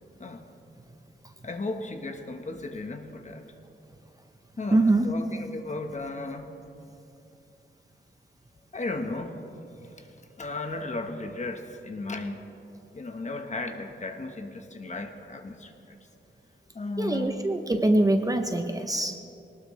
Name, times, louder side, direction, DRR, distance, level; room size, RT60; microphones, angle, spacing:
voice 1, 1.4-3.5 4.6-6.5 8.7-9.4 10.0-10.1 10.4-12.5 12.9-16.0 16.7-17.5, left 2 dB, 35° left, 5 dB, 1.3 m, -35 dB
voice 2, 4.7-5.1 17.0-19.2, right 2 dB, 20° right, 5 dB, 0.7 m, -23 dB
22.5 x 19.0 x 3.3 m, 2.8 s
wide cardioid pair, 145°, 20 cm